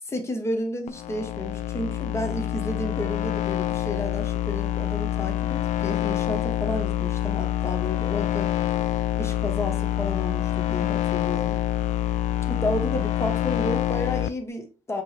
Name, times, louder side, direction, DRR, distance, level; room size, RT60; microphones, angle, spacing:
voice 1, 0.1-8.5 9.2-11.6 12.5-15.0, left 1 dB, 20° left, 1.0 m, -31 dB
sound 1, 0.9-14.3, left 13 dB, 80° left, 0.4 m, -26 dB
5.1 x 3.0 x 3.2 m
cardioid pair, 120°, 12 cm